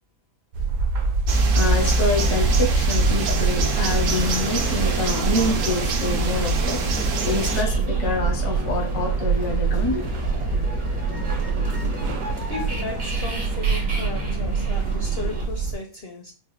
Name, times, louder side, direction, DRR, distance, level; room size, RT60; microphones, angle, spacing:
sound 1, 0.5-15.7, right 4 dB, 90° right, 1.2 m, -24 dB
sound 2, 1.3-7.6, right 4 dB, 60° right, 0.9 m, -27 dB
voice 1, 1.5-6.8 7.2-10.1, left 2 dB, 85° left, 1.5 m, -26 dB
sound 3, 3.1-15.5, equal, 40° right, 0.7 m, -33 dB
voice 2, 12.5-16.3, left 3 dB, 60° left, 0.6 m, -35 dB
4.4 x 2.1 x 3.1 m
omnidirectional pair, 1.6 m